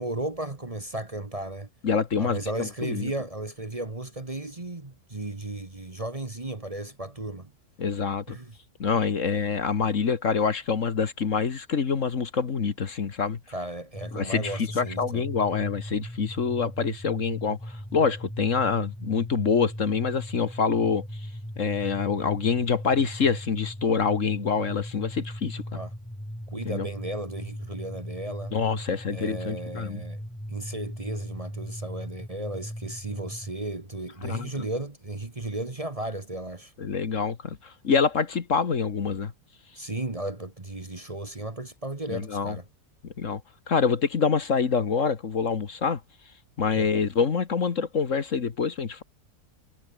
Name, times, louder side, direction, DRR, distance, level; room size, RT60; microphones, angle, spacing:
voice 1, 0.0-1.7 2.2-7.5 8.3-8.5 13.5-15.3 25.7-25.9 26.5-28.5 29.1-30.2 30.5-36.7 39.8-42.7 46.7-46.9, right 2 dB, 25° right, 1.6 m, -35 dB
voice 2, 1.8-3.1 7.8-8.4 8.8-13.4 14.1-21.1 21.6-25.8 26.7-26.9 28.5-30.0 34.2-34.5 36.8-39.3 42.1-42.6 43.2-43.4 43.7-46.0 46.6-49.0, left 5 dB, 55° left, 1.8 m, -26 dB
sound 1, 13.9-33.5, equal, 5° left, 7.6 m, -38 dB
omnidirectional pair, 1.6 m